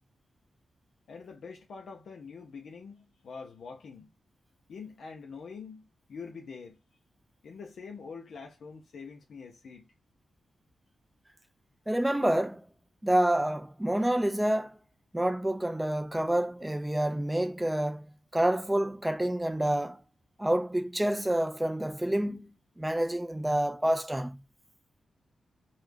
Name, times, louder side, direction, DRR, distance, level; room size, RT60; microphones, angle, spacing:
voice 1, 1.1-4.1 4.7-6.8 7.4-9.9, left 5 dB, 75° left, 0.4 m, -45 dB
voice 2, 11.9-12.6 13.0-14.8 15.1-18.1 18.3-20.0 20.4-24.4, right 1 dB, 10° right, 0.3 m, -28 dB
2.3 x 2.0 x 3.3 m
cardioid pair, 85°, 0 cm